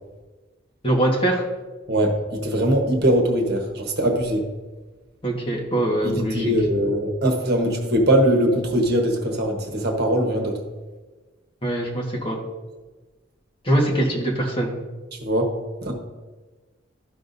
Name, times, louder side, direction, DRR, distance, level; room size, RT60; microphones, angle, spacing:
voice 1, 0.8-1.4 5.2-6.5 11.6-12.4 13.6-14.7, right 1 dB, 30° left, -2 dB, 1.5 m, -22 dB
voice 2, 1.9-4.4 6.0-10.5 15.2-15.5 15.8-15.9, right 1 dB, 55° right, 2 dB, 1.2 m, -21 dB
12.5 x 5.8 x 2.7 m, 1.3 s
head